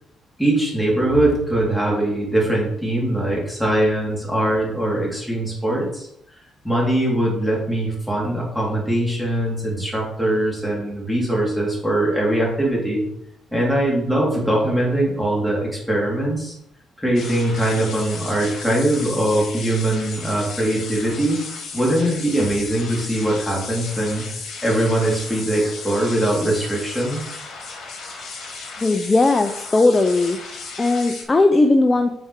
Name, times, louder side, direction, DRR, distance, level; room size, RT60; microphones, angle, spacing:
voice 1, 0.4-6.1 6.6-13.0 13.5-16.5 17.0-21.4 21.7-24.2 24.6-27.2, right 1 dB, ahead, -4 dB, 3.2 m, -21 dB
sound 1, 17.1-31.2, left 4 dB, 70° left, 2.2 m, -35 dB
voice 2, 28.8-30.4 30.8-32.1, left 2 dB, 25° left, 6 dB, 0.6 m, -17 dB
7.4 x 4.6 x 4.4 m, 0.75 s
cardioid pair, 90°, 0 cm